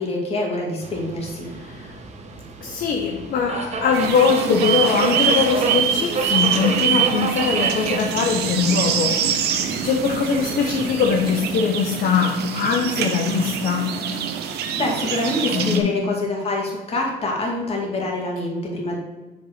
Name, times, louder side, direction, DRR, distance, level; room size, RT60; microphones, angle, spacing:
voice 1, 0.0-1.5 14.5-19.0, left 2 dB, 35° left, -1 dB, 2.4 m, -25 dB
Subway metro underground, 0.8-11.4, right 4 dB, 40° right, 1.1 m, -30 dB
voice 2, 1.5-2.0 2.6-14.1 15.5-15.9, left 6 dB, 60° left, 2 dB, 0.8 m, -22 dB
sound 1, 3.9-15.8, right 7 dB, 75° right, 0.9 m, -25 dB
6.8 x 5.3 x 5.0 m, 1.2 s
cardioid pair, 110°, 17 cm